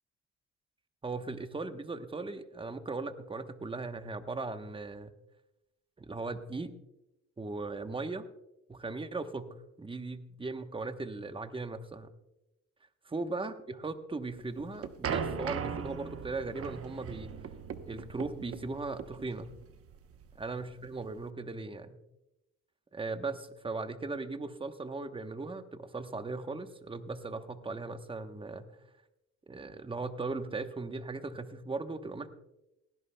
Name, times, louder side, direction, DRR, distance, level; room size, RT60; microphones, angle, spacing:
voice 1, 1.0-5.1 6.0-6.7 7.4-8.3 8.7-12.1 13.1-17.3 17.9-19.5 20.4-22.0 22.9-28.7 29.5-32.3, right 3 dB, 15° right, 9 dB, 1.0 m, -38 dB
sound 1, 14.4-21.2, right 6 dB, 50° right, 0.9 m, -39 dB
18.5 x 16.5 x 2.2 m, 0.92 s
cardioid pair, 90°, 30 cm